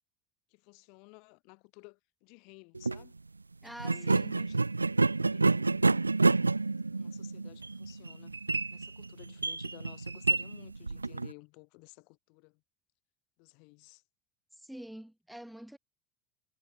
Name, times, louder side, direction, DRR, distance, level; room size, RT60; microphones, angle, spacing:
voice 1, 0.5-3.1 3.6-6.1 6.9-8.4 8.7-12.6 13.4-14.0, left 36 dB, 55° left, 4.7 m, -55 dB
sound 1, 2.7-3.0 3.8-11.3, right 3 dB, 90° right, 0.3 m, -29 dB
voice 2, 3.6-4.3 14.6-15.8, right 1 dB, 5° right, 1.8 m, -46 dB
figure-of-eight pair, 75°, 0 cm